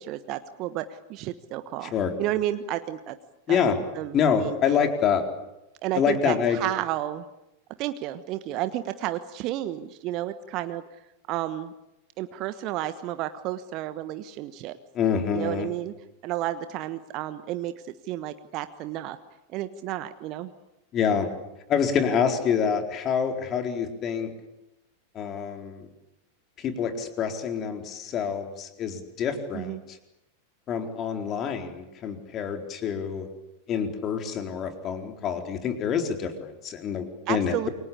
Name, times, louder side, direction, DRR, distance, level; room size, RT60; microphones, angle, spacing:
voice 1, 0.0-1.9 2.2-3.2 3.5-3.6 4.0-4.8 5.8-7.2 7.8-10.8 11.3-11.7 12.2-14.8 15.3-15.9 16.2-19.2 19.5-20.5 29.5-29.8 37.3-37.7, right 13 dB, 40° right, 11 dB, 1.3 m, -31 dB
voice 2, 3.5-3.8 4.1-5.2 5.9-6.6 14.9-15.7 20.9-21.3 21.7-24.3 25.1-25.9 26.6-29.8 30.7-33.3 33.7-37.7, left 7 dB, 30° left, 5 dB, 4.2 m, -26 dB
28.5 x 24.0 x 8.6 m, 0.91 s
figure-of-eight pair, 90°, 0 cm